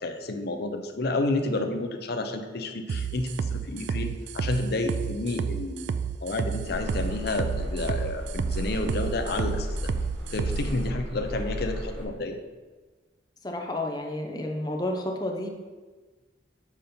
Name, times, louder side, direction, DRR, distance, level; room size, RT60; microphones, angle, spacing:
voice 1, 0.0-5.9 6.2-9.8 10.3-12.4, left 2 dB, 55° left, 6 dB, 0.7 m, -30 dB
sound 1, 2.9-10.7, right 6 dB, 60° right, 0.3 m, -30 dB
sound 2, 6.7-12.0, equal, 85° right, 1.4 m, -34 dB
voice 2, 13.4-15.5, left 1 dB, 20° left, 2 dB, 0.8 m, -31 dB
7.3 x 5.2 x 4.3 m, 1.3 s
head